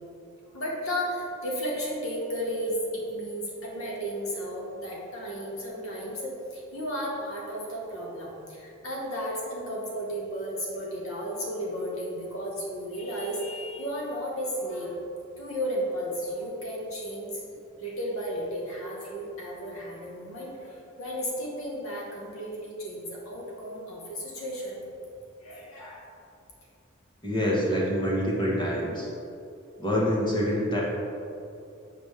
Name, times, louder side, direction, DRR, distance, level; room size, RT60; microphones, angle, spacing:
voice 1, 0.5-15.0 15.4-17.4 17.8-24.8 25.4-26.1, equal, 90° left, -3 dB, 1.5 m, -34 dB
voice 2, 27.2-29.1 29.8-30.8, equal, 20° left, -4 dB, 1.1 m, -26 dB
7.8 x 4.9 x 3.4 m, 2.6 s
head